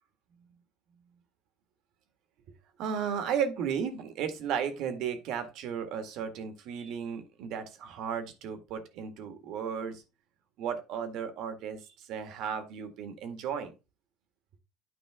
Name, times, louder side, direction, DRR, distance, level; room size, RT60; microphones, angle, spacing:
voice 1, 2.8-10.0 10.6-13.7, right 7 dB, 65° right, 8 dB, 1.8 m, -34 dB
9.6 x 5.0 x 3.6 m, 0.28 s
cardioid pair, 135°, 0 cm